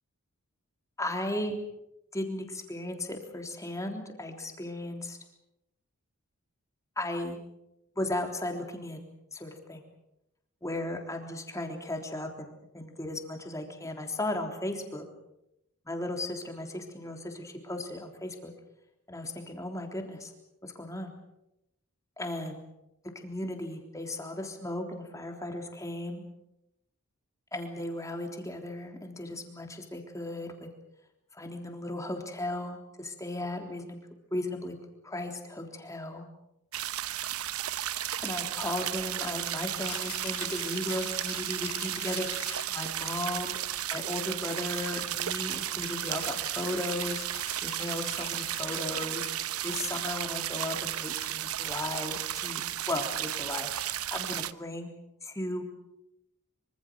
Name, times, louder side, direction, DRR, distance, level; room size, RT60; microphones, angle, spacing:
voice 1, 1.0-1.6 2.1-5.2 7.0-7.4 8.0-9.0 9.3-9.8 10.6-15.1 15.9-18.5 19.1-20.3 20.6-21.1 22.2-22.6 23.2-26.2 27.5-30.7 31.3-34.0 34.3-34.8 35.0-36.3 38.2-42.4 42.7-43.6 43.9-49.3 49.6-52.6 52.9-54.9 55.2-55.6, left 1 dB, 15° left, 3 dB, 3.5 m, -36 dB
sound 1, 36.7-54.5, right 12 dB, 85° right, 0.9 m, -34 dB
Rattle (instrument), 39.7-42.9 45.8-49.0, left 10 dB, 80° left, 3.3 m, -45 dB
25.5 x 25.5 x 6.4 m, 0.86 s
head